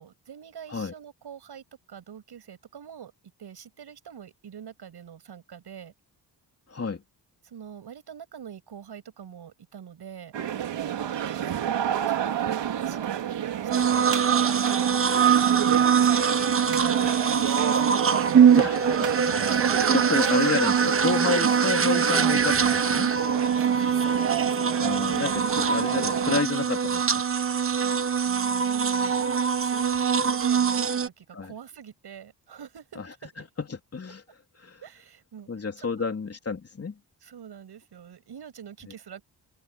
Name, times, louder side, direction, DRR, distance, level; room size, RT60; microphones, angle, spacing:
voice 1, 0.0-3.1 3.4-5.9 7.4-10.3 12.1-12.5 12.8-17.9 19.4-20.2 23.5-24.6 27.8-33.5 34.8-35.5 35.8-36.0 37.2-39.2, right 8 dB, 70° right, 7.8 m, -43 dB
voice 2, 6.7-7.0 17.0-17.1 18.6-19.5 19.9-23.1 24.8-27.2 31.3-31.5 33.6-34.2 34.6-34.8 35.5-36.9, left 4 dB, 35° left, 3.2 m, -30 dB
sound 1, 10.3-26.4, right 10 dB, 90° right, 3.4 m, -30 dB
sound 2, 13.7-31.1, right 7 dB, 30° right, 1.1 m, -23 dB
cardioid pair, 100°, 41 cm